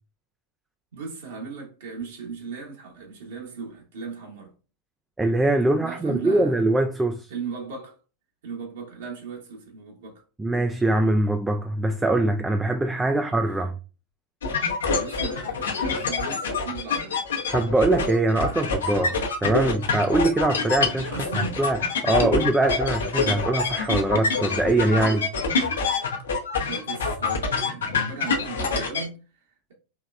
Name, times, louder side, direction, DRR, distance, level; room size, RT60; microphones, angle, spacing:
voice 1, 0.9-4.5 5.8-6.6 7.3-8.0 8.4-10.2 13.1-13.3 14.9-17.2 19.1-19.2 21.1-21.6 26.6-29.7, right 5 dB, 60° right, 1.4 m, -37 dB
voice 2, 5.2-7.3 10.4-13.8 17.5-25.3, right 2 dB, 10° right, 0.3 m, -23 dB
sound 1, 14.4-29.1, left 4 dB, 65° left, 0.8 m, -26 dB
4.6 x 3.1 x 2.3 m
figure-of-eight pair, 90°, 0 cm